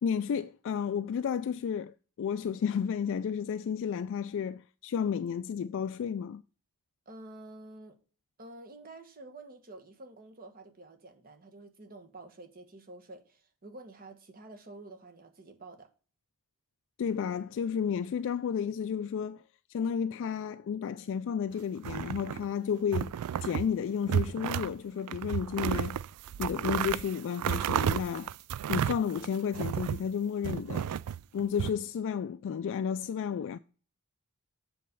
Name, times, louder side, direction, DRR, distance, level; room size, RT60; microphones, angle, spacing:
voice 1, 0.0-6.4 17.0-19.4 19.7-23.1 23.4-26.0 26.4-28.3 28.7-30.9 31.3-33.6, left 7 dB, 55° left, 0.3 m, -32 dB
voice 2, 7.0-8.0 8.4-15.9, right 2 dB, 40° right, 1.3 m, -49 dB
sound 1, 21.8-22.5 22.9-23.7 24.0-24.7 25.1-30.1 30.4-31.7, right 9 dB, 80° right, 0.3 m, -32 dB
7.6 x 4.2 x 6.7 m
head